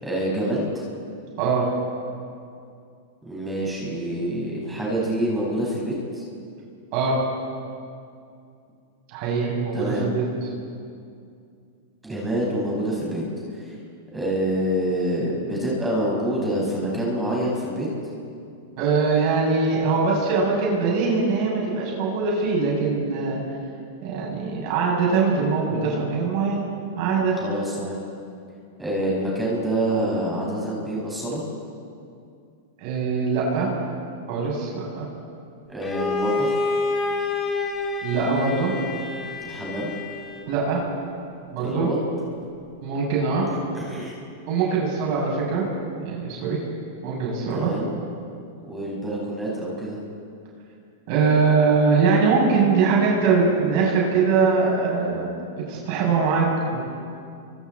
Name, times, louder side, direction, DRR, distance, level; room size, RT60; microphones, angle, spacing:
voice 1, 0.0-0.8 3.2-6.2 9.7-10.1 12.0-13.2 13.6-13.7 14.1-17.9 27.4-28.0 28.8-31.4 35.7-36.6 39.4-39.9 41.6-42.0 43.7-44.1 47.5-47.9 48.6-50.0, right 1 dB, 10° right, -4 dB, 6.1 m, -26 dB
voice 2, 9.1-10.2 18.8-23.4 24.0-26.6 27.0-27.4 32.8-33.7 34.3-35.1 38.0-38.7 40.5-40.8 41.5-41.9 42.8-43.5 44.5-45.6 46.0-46.6 47.0-47.7 51.1-55.3 55.7-56.8, right 4 dB, 50° right, -3 dB, 7.8 m, -22 dB
Bowed string instrument, 35.8-40.6, left 3 dB, 15° left, 3.8 m, -28 dB
29.0 x 25.0 x 4.4 m, 2.5 s
hypercardioid pair, 125°, 0 cm